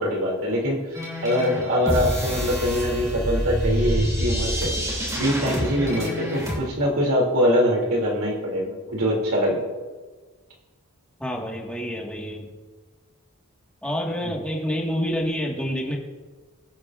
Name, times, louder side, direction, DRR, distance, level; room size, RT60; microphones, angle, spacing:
voice 1, 0.0-4.8 5.2-9.6 14.2-14.3, equal, 90° right, -1 dB, 2.6 m, -23 dB
sound 1, 0.9-6.6, equal, 15° right, 2.6 m, -27 dB
voice 2, 11.2-12.5 13.8-16.0, equal, 5° left, -2 dB, 1.5 m, -28 dB
22.0 x 9.0 x 2.5 m, 1.4 s
head